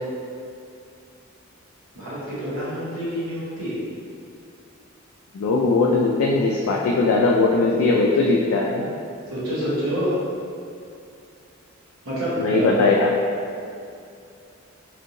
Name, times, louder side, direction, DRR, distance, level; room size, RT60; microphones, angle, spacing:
voice 1, 1.9-3.8 9.3-10.1 12.0-12.8, equal, 80° right, -9 dB, 1.2 m, -27 dB
voice 2, 5.3-8.9 12.4-13.1, left 3 dB, 85° left, -2 dB, 0.3 m, -19 dB
3.5 x 2.8 x 2.6 m, 2.5 s
head